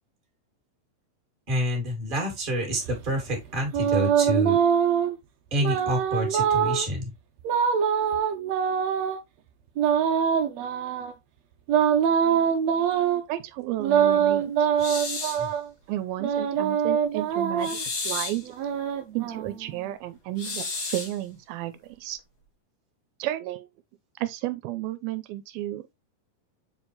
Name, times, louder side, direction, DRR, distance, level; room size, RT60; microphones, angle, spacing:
voice 1, 1.5-4.6 5.5-7.1 15.4-15.5, equal, 15° right, 2.1 m, -28 dB
sound 1, 2.8-5.2 5.6-6.9 7.4-9.2 9.8-11.1 11.7-13.2 13.8-15.6 16.2-17.8 18.4-19.8, right 8 dB, 70° right, 1.7 m, -24 dB
voice 2, 13.3-14.7 15.9-17.7 18.0-18.5 19.1-22.2 23.2-23.7 24.2-25.9, right 14 dB, 90° right, 2.5 m, -32 dB
sound 2, 14.8-15.5 17.6-18.5 20.4-21.2, left 4 dB, 50° left, 1.1 m, -32 dB
7.2 x 4.5 x 3.2 m
omnidirectional pair, 4.3 m